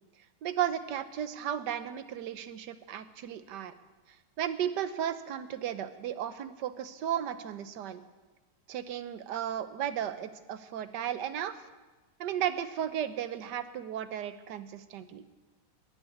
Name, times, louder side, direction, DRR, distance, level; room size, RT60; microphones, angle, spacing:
voice 1, 0.4-3.7 4.4-8.0 8.7-11.6 12.2-15.2, right 10 dB, 70° right, 12 dB, 1.5 m, -34 dB
13.0 x 11.0 x 9.2 m, 1.2 s
omnidirectional pair, 2.0 m